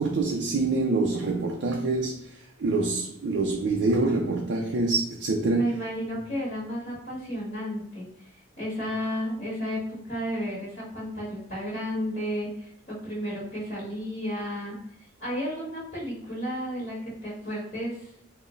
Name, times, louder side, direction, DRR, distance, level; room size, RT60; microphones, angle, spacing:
voice 1, 0.0-5.7, right 3 dB, 65° right, 0.4 m, -26 dB
voice 2, 5.5-14.8 15.2-18.1, equal, 35° left, 1.4 m, -33 dB
3.9 x 2.1 x 3.7 m
head